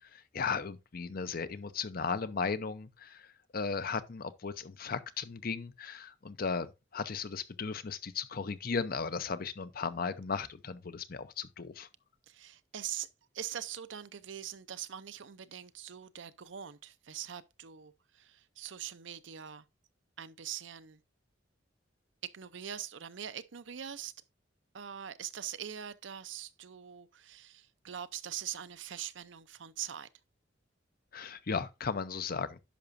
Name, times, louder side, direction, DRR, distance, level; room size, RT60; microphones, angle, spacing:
voice 1, 0.0-3.3 3.5-11.9 31.1-32.6, left 5 dB, 50° left, 0.7 m, -36 dB
voice 2, 12.3-13.1 13.3-19.6 20.2-21.0 22.2-24.1 24.7-30.1, right 10 dB, 75° right, 0.6 m, -43 dB
10.5 x 5.9 x 2.6 m
head